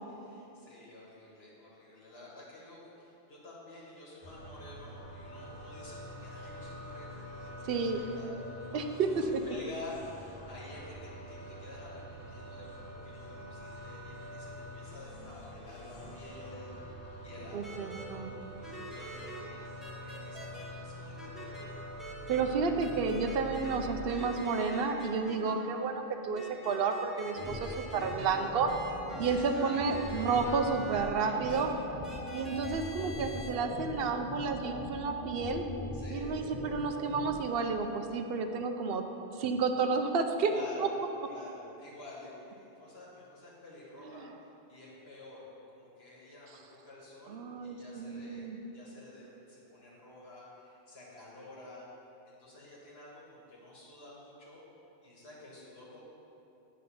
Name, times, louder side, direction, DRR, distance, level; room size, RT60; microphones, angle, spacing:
voice 1, 0.0-8.3 8.7-9.2 9.5-16.7 17.2-22.1 27.6-27.8 29.1-29.7 31.2-31.7 35.9-36.4 40.4-40.9 41.3-44.3 44.7-48.5 48.7-51.9 52.3-54.7 55.0-56.0, left 2 dB, 85° left, -5 dB, 1.8 m, -50 dB
sound 1, 4.2-24.1, equal, 60° left, 1.3 m, -46 dB
voice 2, 7.6-8.0 8.7-9.3 17.5-18.3 22.3-28.7 29.2-31.7 32.3-35.6 36.1-39.0 39.3-40.5 44.0-44.3 47.3-48.6, right 4 dB, 75° right, 6 dB, 0.8 m, -31 dB
sound 2, 17.6-18.0 18.6-19.4 19.8-20.6 21.2-21.6 22.0-22.4 22.8-23.8 24.1-25.5 26.3-31.1 31.5-31.6 32.0-33.5, right 1 dB, ahead, 1.0 m, -45 dB
sound 3, 27.4-37.3, left 1 dB, 45° left, 0.6 m, -41 dB
9.3 x 3.8 x 5.5 m, 3.0 s
omnidirectional pair, 1.0 m